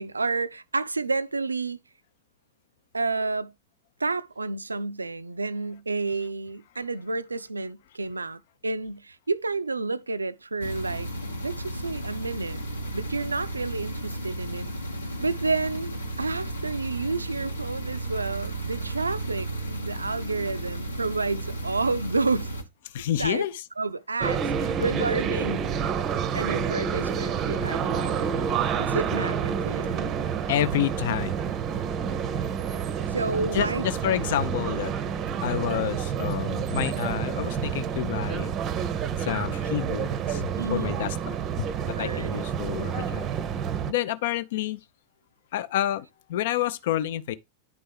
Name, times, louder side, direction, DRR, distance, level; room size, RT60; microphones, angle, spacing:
voice 1, 0.0-1.8 2.9-3.5 4.0-11.1 11.4-12.6 12.9-14.7 15.2-22.5 23.2-23.4 23.8-25.9 26.3-30.2 33.1-33.9 40.6-40.9 41.9-42.4, right 3 dB, 80° right, 0.3 m, -30 dB
sound 1, 10.6-22.6, right 1 dB, 80° left, 1.1 m, -34 dB
voice 2, 22.9-23.5 30.5-31.3 33.5-34.9 35.4-38.5 39.2-41.2 41.6-43.3 43.9-44.8 45.5-47.4, left 11 dB, 55° left, 0.4 m, -29 dB
sound 2, 24.2-43.9, right 7 dB, 30° right, 0.6 m, -29 dB
10.5 x 4.3 x 3.3 m
figure-of-eight pair, 90°, 0 cm